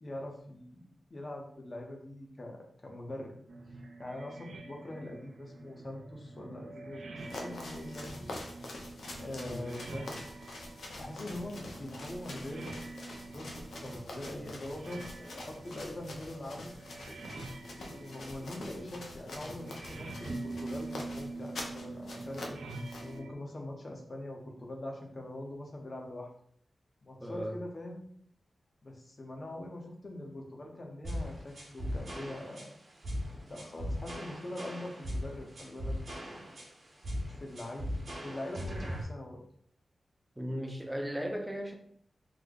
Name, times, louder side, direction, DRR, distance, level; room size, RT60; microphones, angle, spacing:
voice 1, 0.0-3.3 4.0-8.4 9.2-10.1 11.0-13.6 13.8-16.7 17.7-22.6 23.0-26.3 27.0-28.1 28.8-32.7 33.5-36.0 36.3-36.7 37.3-37.9 38.2-39.4, left 1 dB, 40° left, 1 dB, 0.7 m, -43 dB
sound 1, 3.5-23.3, right 2 dB, 75° right, 0.5 m, -45 dB
sound 2, 7.2-23.2, left 2 dB, 85° left, 0.6 m, -46 dB
voice 2, 9.4-9.8 27.2-27.6 40.4-41.7, equal, 5° right, 2 dB, 0.5 m, -37 dB
sound 3, 31.0-39.0, equal, 55° right, 1.0 m, -38 dB
3.2 x 2.1 x 3.8 m, 0.64 s
wide cardioid pair, 110°, 0 cm